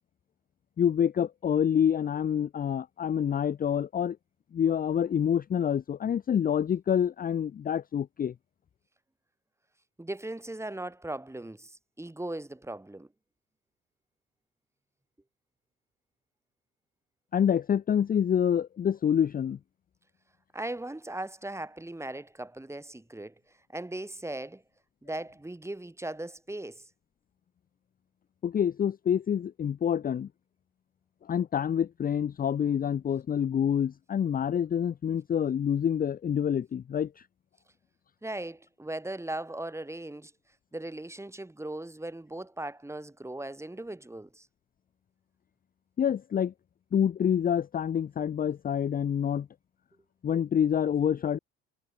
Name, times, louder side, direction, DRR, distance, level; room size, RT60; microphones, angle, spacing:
voice 1, 0.8-4.2 4.5-8.3 17.3-19.6 28.4-30.3 31.3-37.3 46.0-46.5 46.9-49.5 50.2-51.4, left 8 dB, 30° left, 0.6 m, -27 dB
voice 2, 10.0-13.1 20.5-23.3 23.7-24.6 25.0-26.9 38.2-40.3 40.7-44.5, right 1 dB, 10° right, 2.6 m, -38 dB
hypercardioid pair, 60°, 32 cm